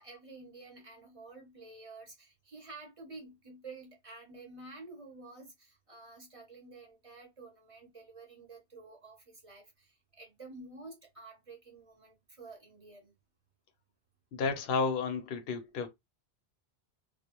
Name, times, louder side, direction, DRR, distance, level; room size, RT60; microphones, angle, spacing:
voice 1, 0.0-13.1, right 3 dB, 35° right, 0.8 m, -50 dB
voice 2, 14.3-15.9, left 4 dB, 70° left, 0.8 m, -32 dB
2.3 x 2.3 x 2.9 m
omnidirectional pair, 1.0 m